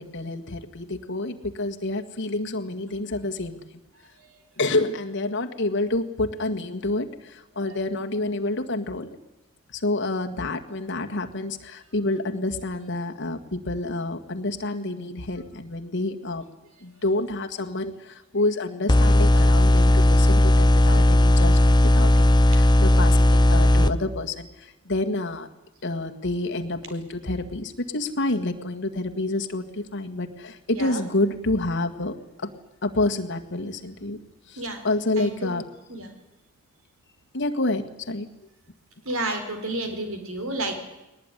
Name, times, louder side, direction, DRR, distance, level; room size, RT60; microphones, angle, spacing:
voice 1, 0.0-3.6 4.6-9.1 9.7-16.4 16.8-25.5 25.8-32.5 32.8-34.2 34.5-35.6 37.3-38.3, left 2 dB, 55° left, 5 dB, 1.9 m, -28 dB
sound 1, 18.9-23.9, left 1 dB, 20° left, 0.8 m, -16 dB
voice 2, 30.7-31.0 34.6-34.8 35.2-35.5 35.9-36.1 39.1-40.8, right 1 dB, 65° right, 6 dB, 4.2 m, -31 dB
20.5 x 19.0 x 10.0 m, 0.99 s
head